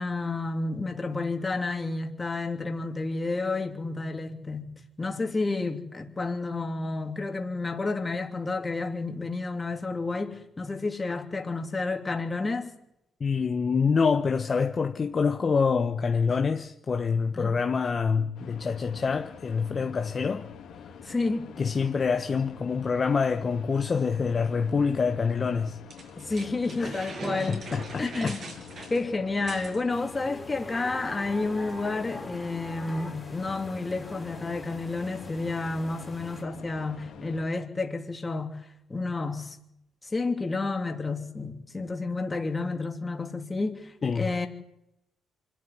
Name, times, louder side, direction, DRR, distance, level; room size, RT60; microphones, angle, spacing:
voice 1, 0.0-4.7 5.0-12.7 17.3-17.5 21.0-21.5 26.2-27.7 28.0-28.5 28.9-38.6 38.9-39.6 40.0-44.5, left 3 dB, 25° left, 3.1 m, -30 dB
voice 2, 13.2-20.5 21.6-25.8 26.8-27.0 27.5-28.3 28.8-28.9 44.0-44.3, left 5 dB, 40° left, 1.2 m, -26 dB
sound 1, 18.3-37.4, left 7 dB, 75° left, 3.3 m, -46 dB
sound 2, 25.9-29.8, right 4 dB, 55° right, 7.4 m, -40 dB
sound 3, 29.9-36.4, left 1 dB, 5° left, 3.8 m, -44 dB
25.0 x 12.5 x 9.9 m
cardioid pair, 90°, 0 cm